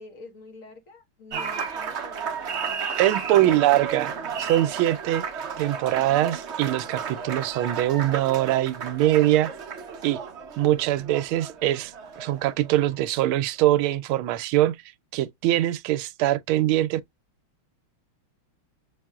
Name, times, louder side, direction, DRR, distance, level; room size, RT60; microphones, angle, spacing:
voice 1, 0.0-4.4, left 3 dB, 40° left, 1.7 m, -47 dB
Applause, 1.3-13.1, right 6 dB, 50° right, 0.8 m, -33 dB
voice 2, 3.0-4.1 4.4-5.3 5.6-9.5 10.0-10.2 10.6-11.9 12.2-14.8 15.1-17.0, right 14 dB, 80° right, 1.4 m, -23 dB
7.4 x 2.7 x 2.3 m
omnidirectional pair, 2.3 m